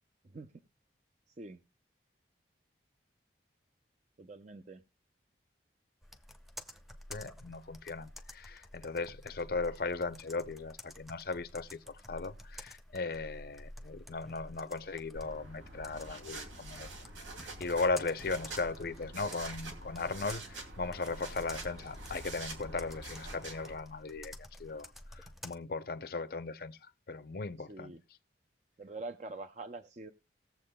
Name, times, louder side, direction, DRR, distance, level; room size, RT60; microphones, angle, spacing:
voice 1, 1.3-1.6 4.2-4.8 27.6-28.0 28.8-30.1, right 3 dB, 40° right, 0.5 m, -45 dB
Computer keyboard, 6.0-25.6, left 1 dB, ahead, 0.6 m, -51 dB
voice 2, 7.1-16.9 17.6-24.3 24.6-24.9 25.2-26.8 27.1-27.9, left 3 dB, 50° left, 0.6 m, -37 dB
sound 1, 15.1-23.7, right 2 dB, 90° right, 2.4 m, -46 dB
19.0 x 7.3 x 2.2 m
head